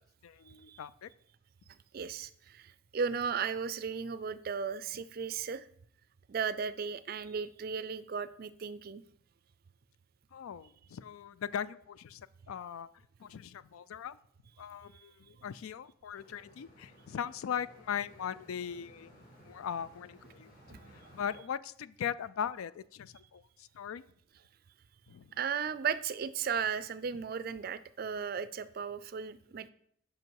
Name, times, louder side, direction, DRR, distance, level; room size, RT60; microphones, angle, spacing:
voice 1, 0.2-1.1 10.3-12.9 13.2-14.2 14.6-19.1 19.4-20.5 21.1-24.0 25.1-25.3, left 8 dB, 90° left, 17 dB, 0.4 m, -39 dB
voice 2, 1.9-5.6 6.3-9.0 14.9-15.1 20.7-20.8 25.4-29.7, right 6 dB, 45° right, 15 dB, 0.3 m, -35 dB
sound 1, 16.1-21.4, equal, 45° left, 3.2 m, -58 dB
7.9 x 5.8 x 4.7 m, 0.68 s
head